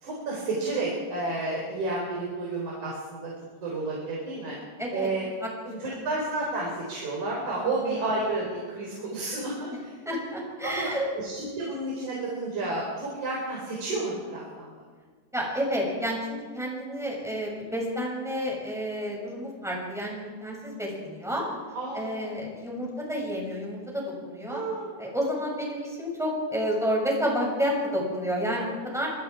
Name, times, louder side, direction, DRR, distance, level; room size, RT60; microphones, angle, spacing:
voice 1, 0.0-3.3 3.6-4.5 4.9-5.2 5.7-9.9 10.6-14.7 21.7-22.5 24.5-25.1, right 2 dB, 40° right, -4 dB, 5.5 m, -31 dB
voice 2, 7.6-8.0 9.0-9.1 10.0-11.1 15.3-21.4 21.9-24.6 25.0-29.1, equal, ahead, -2 dB, 6.1 m, -30 dB
26.0 x 22.5 x 4.8 m, 1.5 s
omnidirectional pair, 5.7 m